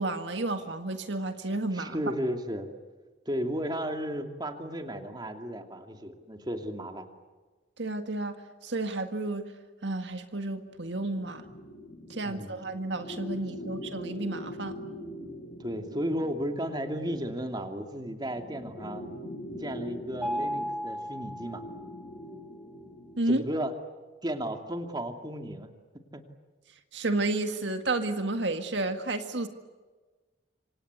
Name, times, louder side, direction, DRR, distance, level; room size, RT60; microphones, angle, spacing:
voice 1, 0.0-2.0 7.8-8.4 8.6-9.5 9.8-11.4 12.1-14.8 19.5-19.6 23.2-23.4 26.9-29.5, right 2 dB, 70° right, 7 dB, 1.8 m, -31 dB
voice 2, 1.7-2.7 3.3-7.1 12.2-12.5 15.6-19.0 19.6-21.6 23.3-23.7 24.2-25.7 26.1-26.2, equal, 25° right, 5 dB, 2.6 m, -34 dB
sound 1, 10.9-23.3, left 1 dB, 45° left, 4.7 m, -43 dB
Mallet percussion, 20.2-22.2, equal, ahead, 1.8 m, -35 dB
27.0 x 26.0 x 8.2 m, 1.3 s
head